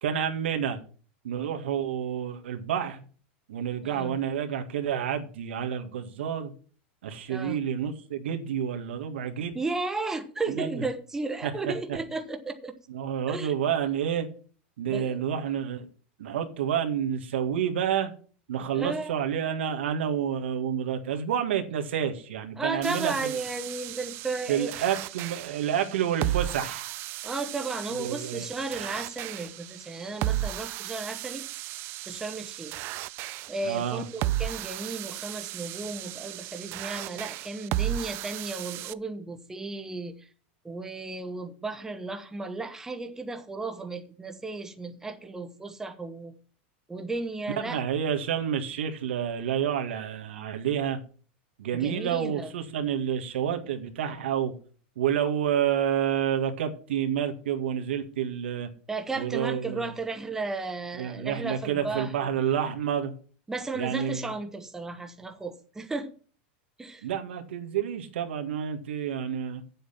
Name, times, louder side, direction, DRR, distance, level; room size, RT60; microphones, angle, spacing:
voice 1, 0.0-0.8 1.2-3.1 3.5-6.5 7.0-9.6 10.5-10.7 11.4-12.0 12.9-14.3 14.8-15.9 16.2-18.1 18.5-23.3 24.5-27.0 28.0-28.5 33.6-34.0 47.6-51.0 51.6-54.5 55.0-58.7 59.2-59.9 61.0-63.1 63.7-64.3 67.0-69.6, right 9 dB, 90° right, 1.9 m, -29 dB
voice 2, 3.8-4.2 7.3-7.6 9.5-12.7 13.3-13.5 14.9-15.2 18.7-19.2 22.6-24.9 27.2-31.4 32.1-32.8 33.5-40.3 40.6-46.3 46.9-47.8 51.7-52.5 58.9-62.1 63.5-66.1 66.8-67.1, right 3 dB, 10° right, 1.1 m, -34 dB
sound 1, 22.8-38.9, right 15 dB, 40° right, 0.4 m, -35 dB
8.9 x 7.8 x 5.8 m
supercardioid pair, 145°, 6 cm